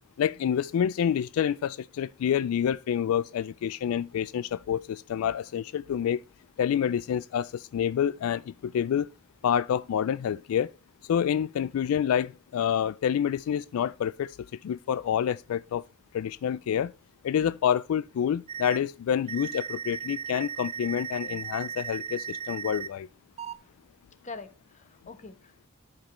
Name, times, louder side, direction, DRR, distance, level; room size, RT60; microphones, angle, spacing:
voice 1, 0.2-6.2 6.6-9.1 9.4-10.7 11.0-15.8 16.1-16.9 17.2-23.1, left 9 dB, 80° left, 0.3 m, -28 dB
sound 1, 18.5-18.8 19.3-22.9 23.4-23.6, right 7 dB, 30° right, 0.4 m, -36 dB
voice 2, 24.2-25.7, left 3 dB, 35° left, 1.0 m, -44 dB
11.5 x 5.2 x 3.1 m
head